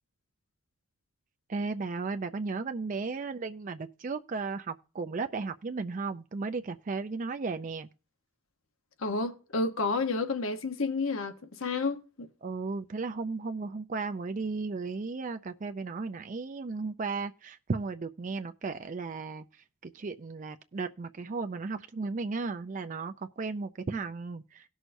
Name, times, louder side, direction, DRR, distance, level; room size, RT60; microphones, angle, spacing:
voice 1, 1.5-7.9 12.4-19.4 19.8-24.6, right 4 dB, 35° right, 0.4 m, -35 dB
voice 2, 9.0-12.3 23.9-24.0, left 3 dB, 70° left, 1.0 m, -31 dB
18.0 x 6.3 x 2.6 m
head